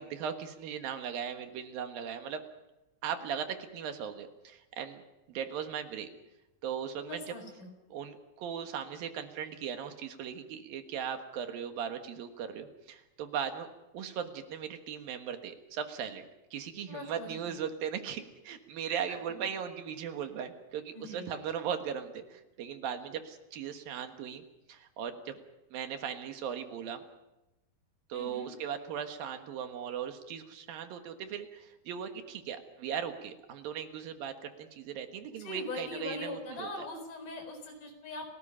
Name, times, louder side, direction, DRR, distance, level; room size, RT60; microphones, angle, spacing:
voice 1, 0.0-2.4 3.0-5.0 5.3-6.1 6.6-7.2 7.9-13.7 13.9-16.2 16.5-25.4 25.7-27.0 28.1-36.7, right 8 dB, 80° right, 7 dB, 3.3 m, -38 dB
voice 2, 7.0-7.7 16.9-17.3 19.3-19.4 20.9-21.3 28.1-28.5 35.4-38.3, left 2 dB, 60° left, 4 dB, 6.0 m, -41 dB
30.0 x 18.5 x 5.6 m, 0.96 s
omnidirectional pair, 4.1 m